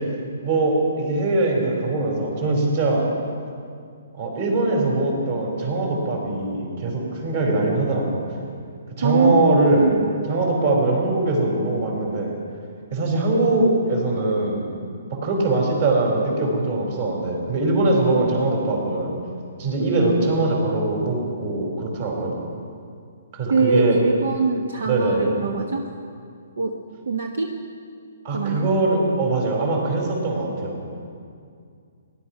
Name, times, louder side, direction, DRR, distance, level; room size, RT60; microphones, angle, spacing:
voice 1, 0.4-3.0 4.1-8.2 9.0-10.0 10.3-12.3 12.9-14.6 15.1-19.1 19.6-22.4 23.3-24.0 24.8-25.3 28.2-30.8, right 2 dB, 45° right, 0 dB, 4.9 m, -22 dB
voice 2, 9.0-10.0 23.5-25.9 26.6-26.8 27.1-27.6 28.3-28.7, right 3 dB, 80° right, 4 dB, 1.3 m, -22 dB
18.5 x 11.5 x 6.0 m, 2.3 s
hypercardioid pair, 155°, 0 cm